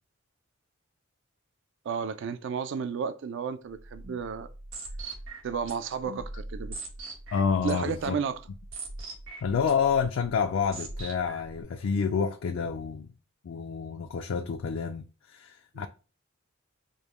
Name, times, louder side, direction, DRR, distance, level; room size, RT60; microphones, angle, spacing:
voice 1, 1.9-4.5 5.4-6.8 7.6-8.4 15.7-15.9, right 6 dB, 65° right, 0.4 m, -32 dB
sound 1, 3.7-11.6, right 2 dB, 90° right, 1.4 m, -42 dB
voice 2, 7.3-8.2 9.4-13.1 13.4-15.9, left 6 dB, 75° left, 0.4 m, -28 dB
5.2 x 2.2 x 3.0 m
head